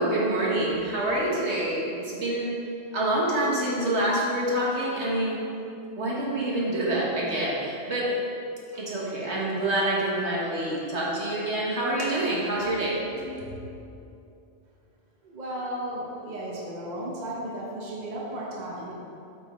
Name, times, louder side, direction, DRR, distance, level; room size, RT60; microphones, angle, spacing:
voice 1, 0.0-2.6 2.9-5.4 6.0-8.1 8.7-13.6, right 1 dB, 65° right, -5 dB, 1.7 m, -27 dB
voice 2, 15.2-18.9, right 1 dB, 40° right, -5 dB, 1.2 m, -34 dB
8.0 x 5.3 x 4.5 m, 2.8 s
omnidirectional pair, 1.3 m